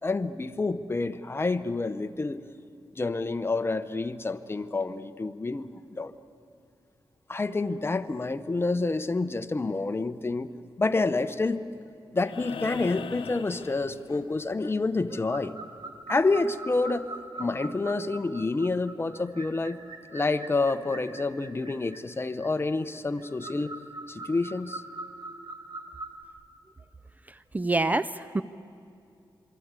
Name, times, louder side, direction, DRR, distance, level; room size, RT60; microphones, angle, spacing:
voice 1, 0.0-2.4 2.9-6.1 7.3-10.5 10.8-11.6 12.1-15.5 16.1-17.1 17.4-19.8 20.1-23.7 24.1-24.8, left 3 dB, 30° left, 11 dB, 1.0 m, -28 dB
sound 1, 12.2-14.5 16.4-16.5, left 7 dB, 85° left, 0.8 m, -40 dB
sound 2, 14.0-14.3 14.6-14.8 15.0-15.3 17.3-17.5 18.0-18.2, left 5 dB, 45° left, 2.6 m, -50 dB
sound 3, 15.1-26.2, right 2 dB, 60° right, 2.5 m, -43 dB
voice 2, 27.5-28.4, right 2 dB, 20° right, 12 dB, 0.5 m, -26 dB
26.5 x 24.0 x 8.3 m, 2.5 s
wide cardioid pair, 95°, 9 cm